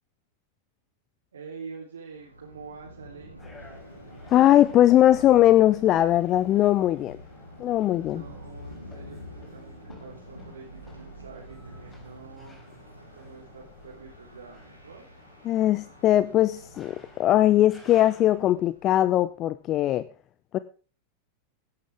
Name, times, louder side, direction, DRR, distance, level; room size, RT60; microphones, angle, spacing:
voice 1, 1.3-3.4 8.0-12.6 13.1-15.1, right 5 dB, 70° right, -2 dB, 3.6 m, -46 dB
Thunder, 2.1-19.5, equal, 90° right, 3.2 m, -48 dB
sound 1, 3.4-18.5, left 3 dB, 15° left, 4.2 m, -54 dB
sound 2, 3.6-17.7, left 1 dB, 90° left, 6.8 m, -54 dB
voice 2, 4.3-7.2 7.6-8.2 15.4-20.1 20.5-20.6, left 13 dB, 35° left, 15 dB, 0.7 m, -20 dB
17.0 x 11.5 x 3.5 m, 0.38 s
figure-of-eight pair, 90°, 0 cm